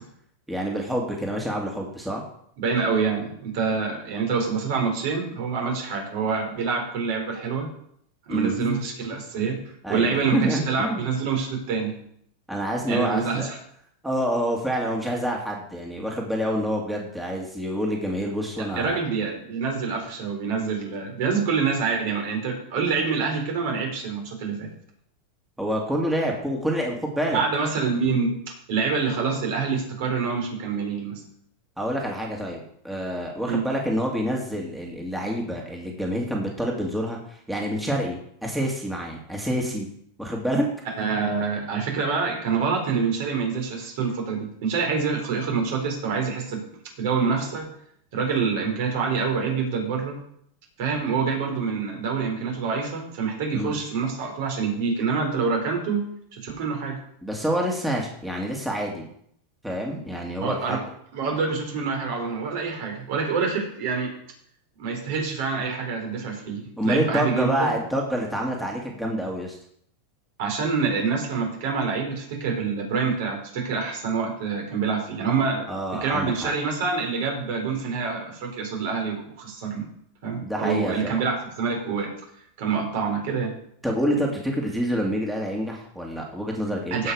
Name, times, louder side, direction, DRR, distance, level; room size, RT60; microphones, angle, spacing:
voice 1, 0.5-2.2 8.3-8.8 9.8-11.0 12.5-13.5 14.0-19.0 25.6-27.4 31.8-39.9 40.2-40.7 53.5-53.7 57.2-59.1 59.6-60.8 66.8-69.5 75.7-76.5 80.4-81.1 83.8-87.1, equal, 5° right, -1 dB, 2.1 m, -27 dB
voice 2, 2.6-7.7 8.3-9.6 9.9-12.0 12.9-13.5 18.8-24.7 27.3-28.3 28.7-31.2 33.4-33.7 41.0-46.6 47.0-47.7 48.1-50.2 50.8-57.0 60.4-60.8 61.1-64.1 64.8-67.8 70.4-75.7 76.0-79.9 80.2-82.1 82.6-83.6 86.9-87.1, right 5 dB, 65° right, 1 dB, 4.3 m, -26 dB
16.5 x 5.8 x 4.8 m, 0.68 s
supercardioid pair, 125°, 0 cm